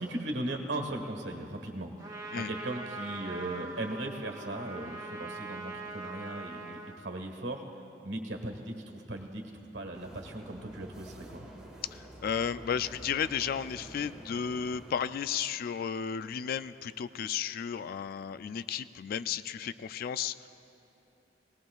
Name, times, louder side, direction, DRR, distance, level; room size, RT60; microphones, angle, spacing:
voice 1, 0.0-7.6 8.0-9.4 9.7-11.5, right 1 dB, 75° right, 3 dB, 1.4 m, -38 dB
Trumpet, 2.0-7.0, right 2 dB, 20° right, 1.1 m, -42 dB
sound 1, 9.9-15.0, right 1 dB, 5° right, 1.8 m, -49 dB
voice 2, 11.9-20.5, left 7 dB, 55° left, 14 dB, 0.3 m, -33 dB
19.5 x 18.5 x 2.3 m, 2.9 s
head